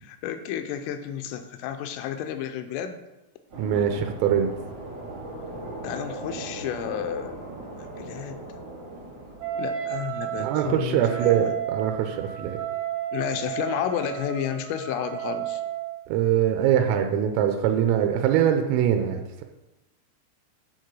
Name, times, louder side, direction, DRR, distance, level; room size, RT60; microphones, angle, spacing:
voice 1, 0.0-3.0 5.8-7.4 7.8-8.4 9.6-11.5 13.1-15.6, left 9 dB, 85° left, 9 dB, 3.2 m, -31 dB
sound 1, 3.5-10.6, right 2 dB, 50° right, 1.9 m, -39 dB
voice 2, 3.6-4.5 10.4-12.6 16.1-19.4, right 9 dB, 90° right, 5 dB, 3.4 m, -23 dB
Wind instrument woodwind instrument, 9.4-16.0, right 11 dB, 70° right, 3.3 m, -33 dB
9.6 x 4.7 x 7.5 m, 0.98 s
omnidirectional pair, 5.9 m